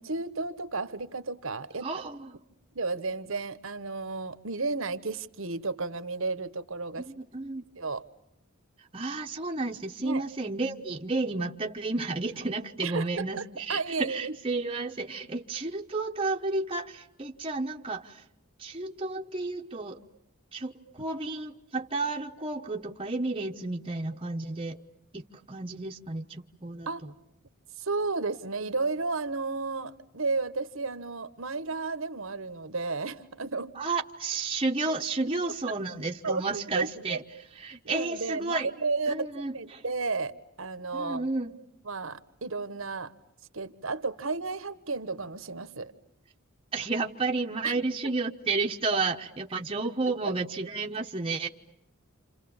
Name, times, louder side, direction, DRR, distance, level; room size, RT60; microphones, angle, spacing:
voice 1, 0.0-1.9 2.7-7.1 7.8-8.0 10.0-10.2 12.8-13.4 13.7-14.3 26.9-27.0 27.8-33.7 36.2-37.2 37.8-41.3 41.9-43.1 43.5-45.9 47.6-47.8, right 3 dB, 65° right, 13 dB, 1.3 m, -33 dB
voice 2, 1.8-2.4 7.0-7.7 8.8-18.2 18.6-20.0 20.5-24.8 25.1-25.2 25.5-27.1 33.7-37.2 37.5-38.7 39.1-39.8 40.9-41.5 46.7-51.5, right 3 dB, 25° right, 1 dB, 1.1 m, -32 dB
28.5 x 28.0 x 7.2 m, 0.81 s
head